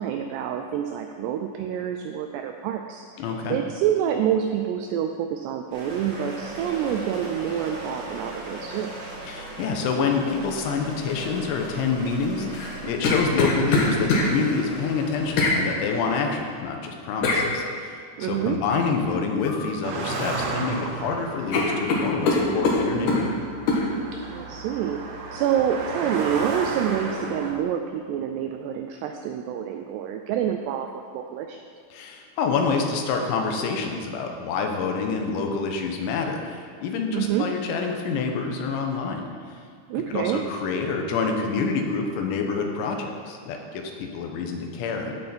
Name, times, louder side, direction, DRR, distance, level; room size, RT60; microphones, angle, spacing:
voice 1, 0.0-8.9 18.2-18.6 24.3-31.6 37.1-37.5 39.9-40.5, right 9 dB, 90° right, 5 dB, 2.4 m, -27 dB
voice 2, 3.2-3.6 9.2-23.3 31.9-39.2 39.5-39.6 40.1-45.1, left 5 dB, 85° left, 3 dB, 3.3 m, -27 dB
sound 1, 5.7-16.6, right 1 dB, 50° right, 1.4 m, -39 dB
sound 2, 12.5-14.3 15.4-15.6 17.2-17.4 19.4-19.7 20.1-20.8 21.1-21.2 21.5-23.2 23.7-23.8, left 3 dB, 65° left, 2.0 m, -23 dB
Car passing by, 19.8-27.5, right 3 dB, 70° right, 2.4 m, -33 dB
15.0 x 6.5 x 4.3 m, 2.2 s
omnidirectional pair, 5.3 m